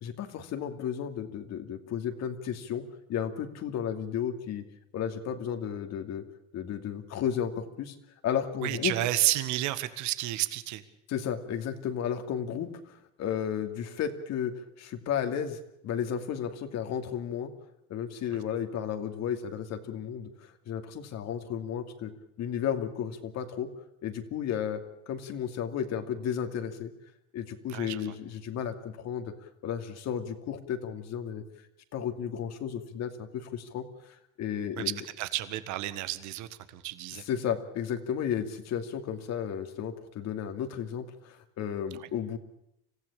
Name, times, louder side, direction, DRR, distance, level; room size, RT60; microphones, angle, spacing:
voice 1, 0.0-4.6 4.9-6.2 6.5-7.9 8.2-8.9 11.1-14.5 14.8-15.6 15.8-17.5 17.9-22.1 22.4-23.7 24.0-26.9 27.3-29.3 29.6-31.4 31.9-33.9 34.4-35.0 37.1-42.4, left 8 dB, 55° left, 7 dB, 2.6 m, -33 dB
voice 2, 8.6-10.8 27.7-28.1 34.8-37.2 42.0-42.1, right 15 dB, 65° right, 13 dB, 1.7 m, -31 dB
26.0 x 15.5 x 8.6 m, 0.79 s
supercardioid pair, 100°, 31 cm